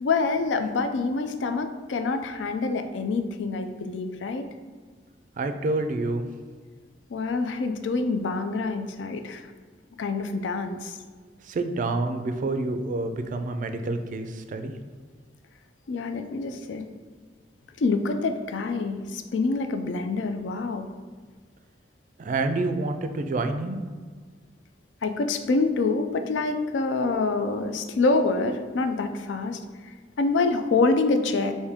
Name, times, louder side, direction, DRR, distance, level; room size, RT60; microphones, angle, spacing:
voice 1, 0.0-4.5 7.1-9.5 10.0-10.9 15.9-16.8 17.8-20.9 25.0-31.5, left 3 dB, 80° left, 8 dB, 0.4 m, -26 dB
voice 2, 5.4-6.2 11.5-14.7 22.2-23.8, right 2 dB, 45° right, 7 dB, 0.3 m, -28 dB
4.9 x 2.6 x 3.5 m, 1.5 s
head